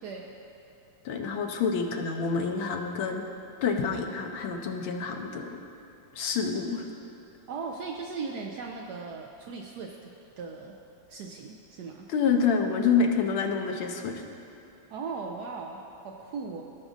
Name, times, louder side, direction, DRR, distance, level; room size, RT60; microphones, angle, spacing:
voice 1, 0.0-0.3 7.5-10.1 10.4-10.8 11.1-12.1 14.9-16.6, right 4 dB, 75° right, 0 dB, 0.9 m, -38 dB
voice 2, 1.0-3.2 3.6-5.6 6.1-6.8 12.1-14.1, left 5 dB, 80° left, 3 dB, 1.6 m, -27 dB
18.0 x 6.1 x 2.6 m, 2.7 s
omnidirectional pair, 2.2 m